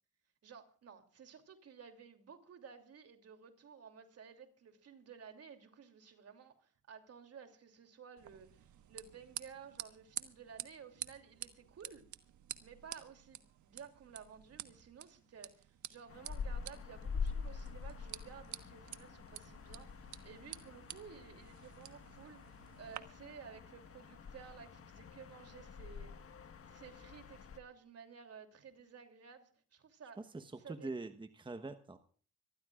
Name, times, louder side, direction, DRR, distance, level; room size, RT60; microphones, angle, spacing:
voice 1, 0.4-12.1 12.6-26.1 26.7-30.2 30.6-30.9, right 6 dB, 55° right, 3.0 m, -54 dB
sound 1, 8.2-23.0, right 11 dB, 75° right, 1.4 m, -50 dB
sound 2, 16.1-27.6, left 5 dB, 50° left, 1.7 m, -46 dB
voice 2, 30.2-32.0, right 3 dB, 15° right, 1.1 m, -44 dB
25.5 x 14.5 x 2.5 m
cardioid pair, 90°, 30 cm